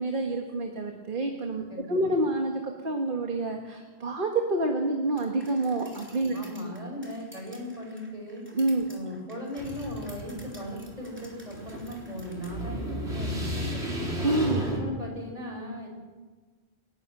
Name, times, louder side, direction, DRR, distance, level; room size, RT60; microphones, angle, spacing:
voice 1, 0.0-6.4 8.5-8.9 14.2-14.7, right 2 dB, 55° right, 2 dB, 1.9 m, -28 dB
sound 1, 5.2-12.5, equal, 10° right, 3.7 m, -53 dB
voice 2, 6.3-8.5 8.9-14.2 14.7-15.9, equal, 35° right, 0 dB, 6.5 m, -38 dB
sound 2, 9.6-14.8, equal, 85° right, 4.4 m, -33 dB
29.5 x 12.0 x 7.8 m, 1.4 s
omnidirectional pair, 1.1 m